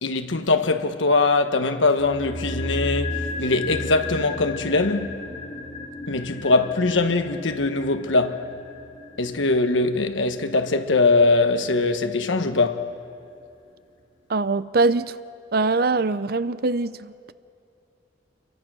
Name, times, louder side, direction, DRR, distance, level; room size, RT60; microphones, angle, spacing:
voice 1, 0.0-5.3 6.1-8.5 9.2-12.9, left 3 dB, 85° left, 1.3 m, -22 dB
sound 1, 2.0-12.2 12.5-12.6, left 2 dB, 35° left, 2.2 m, -34 dB
voice 2, 14.3-15.2 15.5-17.3, right 3 dB, 55° right, 0.6 m, -23 dB
29.0 x 23.0 x 6.2 m
head